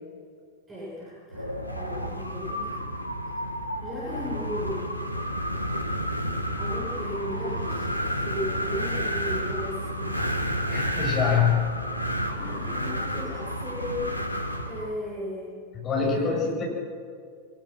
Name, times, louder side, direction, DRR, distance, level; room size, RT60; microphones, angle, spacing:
voice 1, 0.7-3.0 3.3-3.4 3.8-4.9 6.6-10.2 12.3-15.5 16.0-16.6, left 1 dB, 15° right, -7 dB, 7.9 m, -36 dB
Wind, 1.3-15.0, equal, 90° left, 1.7 m, -30 dB
voice 2, 10.7-12.0 15.8-16.6, left 7 dB, 30° left, -2 dB, 7.7 m, -25 dB
24.5 x 21.0 x 6.1 m, 2.1 s
figure-of-eight pair, 90°, 0 cm